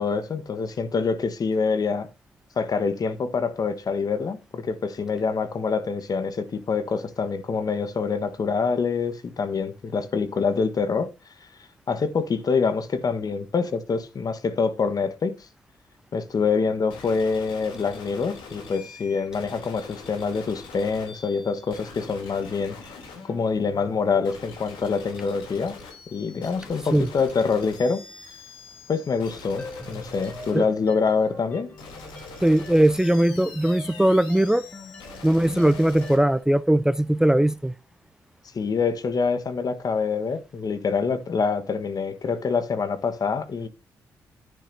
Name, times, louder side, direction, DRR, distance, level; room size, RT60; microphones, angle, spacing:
voice 1, 0.0-2.1 2.6-11.1 11.9-15.4 16.1-22.8 23.3-25.8 26.1-28.0 28.9-31.7 38.5-43.7, left 5 dB, 50° left, 1.3 m, -25 dB
sound 1, 16.9-36.2, left 4 dB, 80° left, 3.2 m, -44 dB
sound 2, 29.6-36.4, left 1 dB, 20° left, 2.4 m, -42 dB
voice 2, 32.4-34.6 35.2-37.7, right 1 dB, 5° right, 0.5 m, -20 dB
10.0 x 10.0 x 2.7 m
hypercardioid pair, 45°, 8 cm